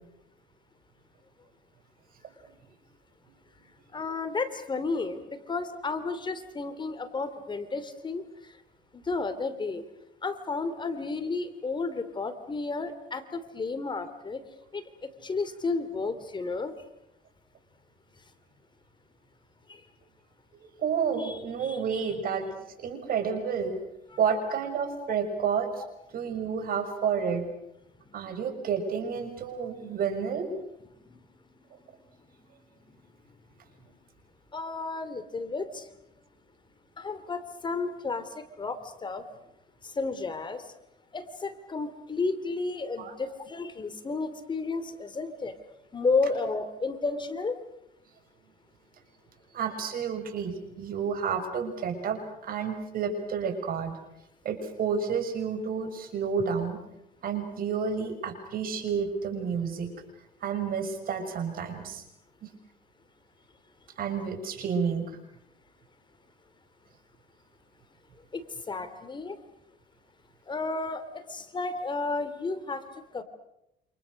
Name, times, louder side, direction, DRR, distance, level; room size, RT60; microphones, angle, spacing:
voice 1, 3.9-8.2 8.9-9.8 10.2-14.4 14.7-14.8 15.2-16.7 19.7-19.8 21.2-22.1 34.5-35.9 37.0-39.2 39.8-40.6 41.1-45.6 45.9-47.5 68.3-69.4 70.5-71.0 71.3-72.8 73.1-73.2, left 3 dB, 25° left, 10 dB, 2.9 m, -32 dB
voice 2, 20.6-22.5 22.8-23.8 24.2-25.7 26.1-27.4 28.1-30.5 43.0-43.2 49.5-54.0 54.4-56.8 57.2-59.9 60.4-62.0 62.4-62.5 64.0-65.1, right 6 dB, 60° right, 7 dB, 6.2 m, -30 dB
28.5 x 27.5 x 6.4 m, 0.83 s
cardioid pair, 110°, 17 cm